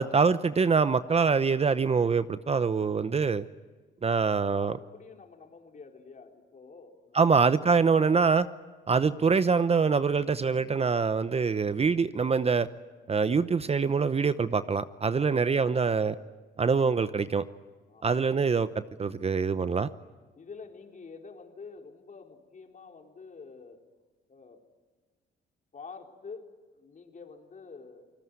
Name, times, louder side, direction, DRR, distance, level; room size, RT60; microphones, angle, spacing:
voice 1, 0.0-3.4 4.0-4.8 7.1-8.5 8.9-12.7 13.1-16.1 16.6-17.4 18.0-19.9, right 5 dB, 30° right, 13 dB, 0.8 m, -24 dB
voice 2, 4.2-7.4 15.1-16.1 17.9-18.2 20.4-23.8 24.3-24.6 25.7-26.5 26.7-28.0, left 4 dB, 40° left, 3 dB, 4.0 m, -48 dB
28.5 x 19.5 x 9.6 m, 1.3 s
cardioid pair, 90°, 20 cm